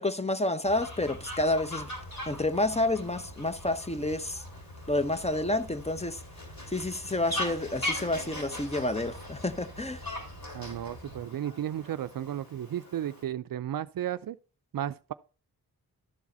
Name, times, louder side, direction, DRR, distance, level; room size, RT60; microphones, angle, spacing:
voice 1, 0.0-1.9 2.3-4.4 4.9-6.2 6.7-10.1, left 2 dB, 15° left, 0.7 m, -29 dB
sound 1, 0.6-11.2, left 1 dB, 80° left, 2.5 m, -47 dB
Fowl, 0.7-13.2, left 1 dB, 60° left, 3.9 m, -41 dB
voice 2, 10.5-14.4 14.7-15.1, right 11 dB, 60° right, 0.5 m, -34 dB
12.0 x 4.6 x 4.2 m
cardioid pair, 50°, 39 cm